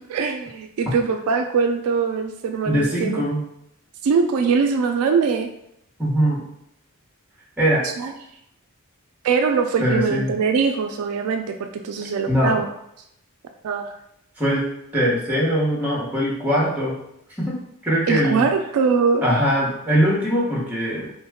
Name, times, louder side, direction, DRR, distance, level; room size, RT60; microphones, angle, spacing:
voice 1, 0.0-3.2 4.0-5.5 7.8-8.1 9.2-12.7 13.6-13.9 18.1-19.2, right 5 dB, 75° right, 5 dB, 0.3 m, -22 dB
voice 2, 2.7-3.4 6.0-6.4 7.6-7.9 9.8-10.3 12.3-12.6 14.4-16.9 17.4-17.6 17.8-18.5 19.2-21.1, equal, 5° right, -5 dB, 0.9 m, -21 dB
3.0 x 2.2 x 3.5 m, 0.77 s
head